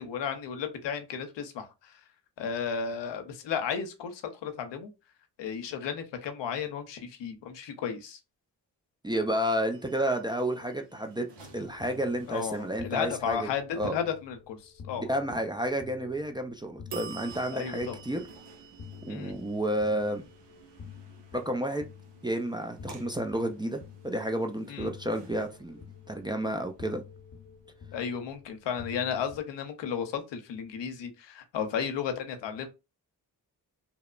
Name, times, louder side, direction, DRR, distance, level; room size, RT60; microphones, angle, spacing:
voice 1, 0.0-2.0 2.4-4.9 5.4-8.2 12.3-15.1 17.5-18.0 19.1-19.3 24.7-24.9 27.9-32.7, left 7 dB, 85° left, 0.6 m, -34 dB
voice 2, 9.0-11.3 11.5-13.5 13.8-14.0 15.0-18.3 19.1-20.2 21.3-21.9 22.2-27.0, right 1 dB, 10° right, 0.3 m, -31 dB
sound 1, 9.7-13.5 16.9-27.6, right 7 dB, 75° right, 0.7 m, -50 dB
sound 2, 11.4-29.4, left 7 dB, 40° left, 0.7 m, -50 dB
2.8 x 2.0 x 2.4 m
supercardioid pair, 45°, 42 cm